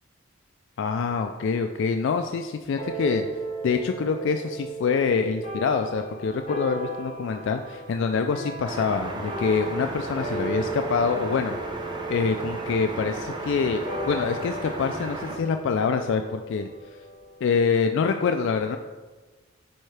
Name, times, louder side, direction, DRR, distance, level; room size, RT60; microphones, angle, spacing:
voice 1, 0.8-3.3 3.6-11.6 12.1-17.0 17.4-18.8, left 5 dB, 60° left, 6 dB, 0.3 m, -25 dB
sound 1, 2.8-17.5, right 2 dB, 30° left, 1.4 m, -36 dB
sound 2, 8.6-15.4, right 2 dB, 20° right, 0.6 m, -34 dB
8.7 x 4.6 x 3.3 m, 1.3 s
head